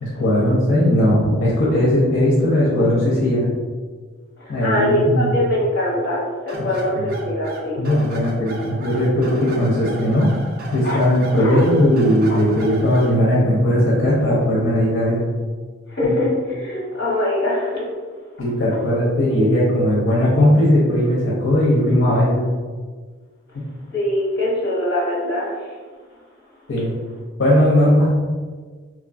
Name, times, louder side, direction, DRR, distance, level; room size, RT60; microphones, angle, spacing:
voice 1, 0.0-3.4 4.5-5.3 6.6-6.7 6.9-7.2 7.8-10.3 10.7-15.2 16.0-16.1 18.4-22.4 23.5-23.6 26.7-27.0 27.4-28.1, left 1 dB, 75° left, -7 dB, 0.6 m, -18 dB
voice 2, 4.4-7.8 10.8-11.0 11.3-11.6 15.9-17.9 23.9-25.7, left 1 dB, 55° left, -5 dB, 1.0 m, -22 dB
sound 1, 6.5-13.2, right 3 dB, 50° right, 0.4 m, -35 dB
2.9 x 2.4 x 2.4 m, 1.5 s
head